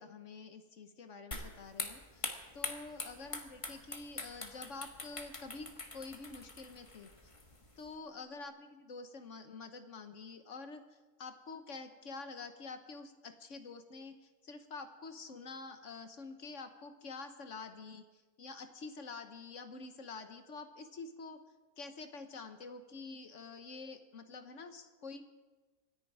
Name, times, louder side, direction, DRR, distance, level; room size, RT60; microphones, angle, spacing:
voice 1, 0.0-2.3 2.5-7.1 7.8-21.4 21.8-25.2, left 4 dB, 55° left, 8 dB, 1.3 m, -48 dB
sound 1, 1.3-7.9, left 2 dB, 20° left, 1.3 m, -44 dB
25.5 x 10.5 x 4.8 m, 1.2 s
omnidirectional pair, 1.7 m